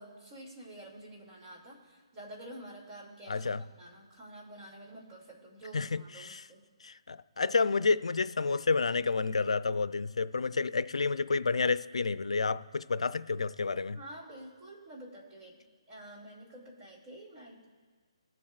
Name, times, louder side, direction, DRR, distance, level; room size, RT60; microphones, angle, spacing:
voice 1, 0.0-6.6 13.9-17.7, right 1 dB, 20° right, -3 dB, 2.5 m, -49 dB
voice 2, 3.3-3.6 5.7-6.5 6.8-14.0, left 4 dB, 90° left, 14 dB, 0.4 m, -30 dB
20.0 x 7.4 x 2.4 m, 1.5 s
hypercardioid pair, 160°, 3 cm